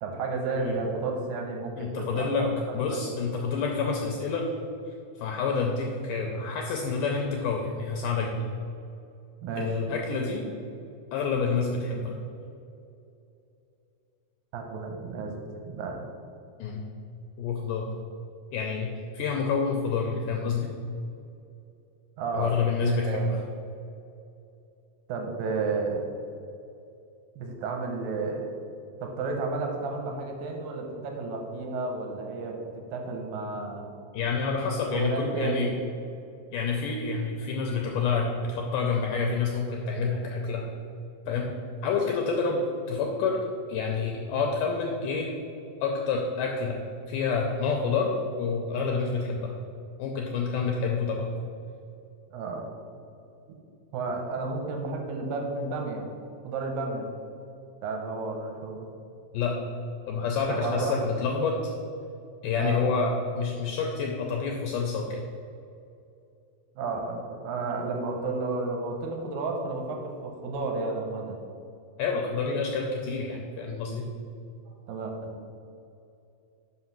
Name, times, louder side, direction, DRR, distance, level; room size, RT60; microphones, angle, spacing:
voice 1, 0.0-3.0 9.4-9.7 14.5-16.1 22.2-22.6 22.8-23.3 25.1-26.1 27.4-28.4 29.0-33.9 34.9-35.8 52.3-52.6 53.9-56.1 56.4-57.1 57.8-58.9 60.5-61.0 62.5-62.8 66.8-71.4 74.9-75.3, right 3 dB, 80° right, 2 dB, 2.4 m, -32 dB
voice 2, 1.8-2.5 2.7-4.5 4.9-8.4 9.6-10.5 11.1-12.2 16.6-16.8 17.4-17.9 18.5-18.9 19.1-20.7 22.3-23.4 34.1-35.7 36.5-40.6 41.3-41.5 41.8-42.6 42.9-43.4 43.7-45.3 45.8-46.8 47.1-49.5 50.0-51.3 59.3-59.5 60.1-61.6 62.4-65.2 72.0-74.0, left 5 dB, 80° left, 1 dB, 1.9 m, -28 dB
5.9 x 5.5 x 5.9 m, 2.7 s
omnidirectional pair, 4.3 m